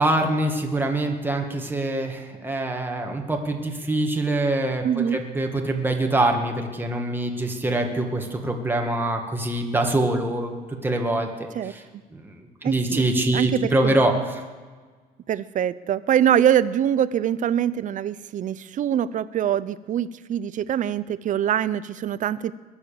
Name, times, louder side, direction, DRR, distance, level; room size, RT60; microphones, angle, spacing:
voice 1, 0.0-4.8 5.1-11.8 12.1-14.1, right 2 dB, 10° right, 2 dB, 1.9 m, -24 dB
voice 2, 4.8-5.2 11.5-12.0 12.6-13.0 13.3-14.0 15.3-22.5, right 10 dB, 50° right, 17 dB, 0.6 m, -24 dB
21.5 x 7.2 x 7.1 m, 1.4 s
cardioid pair, 110°, 17 cm